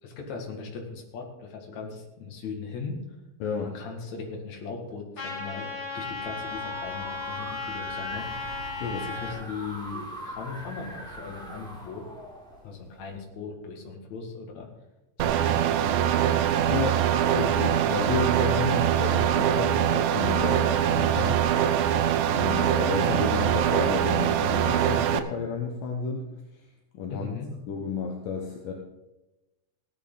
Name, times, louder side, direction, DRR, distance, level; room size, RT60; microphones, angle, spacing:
voice 1, 0.0-3.0 3.6-8.5 8.9-12.0 12.6-14.7 15.2-16.2 27.1-27.5, left 5 dB, 55° left, 1 dB, 3.1 m, -38 dB
voice 2, 3.4-3.7 8.8-9.0 16.7-21.4 22.3-26.3 26.9-27.3 27.7-28.7, left 5 dB, 70° left, 1 dB, 2.7 m, -31 dB
Trumpet, 5.2-9.4, left 3 dB, 35° left, 3.0 m, -35 dB
sound 1, 6.0-13.2, right 1 dB, ahead, 1.9 m, -42 dB
sound 2, 15.2-25.2, right 10 dB, 75° right, 2.0 m, -23 dB
17.0 x 10.5 x 4.0 m, 0.99 s
omnidirectional pair, 4.1 m